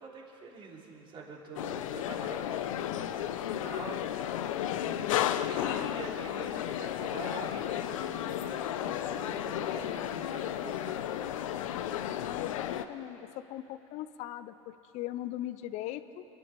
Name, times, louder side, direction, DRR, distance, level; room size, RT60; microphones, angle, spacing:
voice 1, 0.0-2.6 2.9-11.0, right 3 dB, 30° right, -2 dB, 2.9 m, -46 dB
sound 1, 1.6-12.9, left 11 dB, 80° left, 0.7 m, -33 dB
voice 2, 12.2-16.2, left 14 dB, 45° left, 13 dB, 0.6 m, -39 dB
26.0 x 11.5 x 4.8 m, 3.0 s
supercardioid pair, 130°, 17 cm